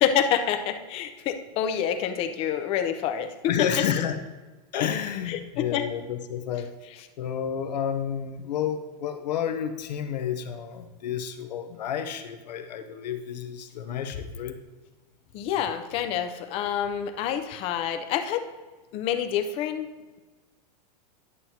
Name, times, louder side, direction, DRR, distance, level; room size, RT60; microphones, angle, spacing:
voice 1, 0.0-3.7 5.3-5.8 15.3-18.4 18.9-19.9, left 9 dB, 30° left, 7 dB, 0.5 m, -27 dB
voice 2, 3.5-4.1 4.7-6.7 7.2-14.5, left 8 dB, 85° left, 7 dB, 0.9 m, -30 dB
11.0 x 7.5 x 2.8 m, 1.3 s
supercardioid pair, 155°, 21 cm